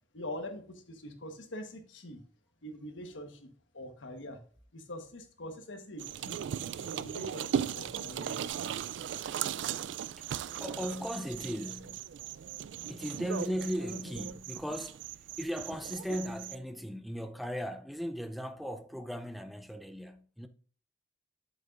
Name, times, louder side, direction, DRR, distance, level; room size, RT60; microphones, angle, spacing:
voice 1, 0.1-2.2 2.6-3.5 3.7-4.4 4.7-6.4 6.8-8.3, left 1 dB, 80° left, 1.3 m, -44 dB
sound 1, 6.0-16.6, right 9 dB, 70° right, 0.3 m, -38 dB
voice 2, 9.7-12.0 12.9-15.0 15.4-20.5, equal, ahead, 0.5 m, -37 dB
8.3 x 7.8 x 2.5 m
head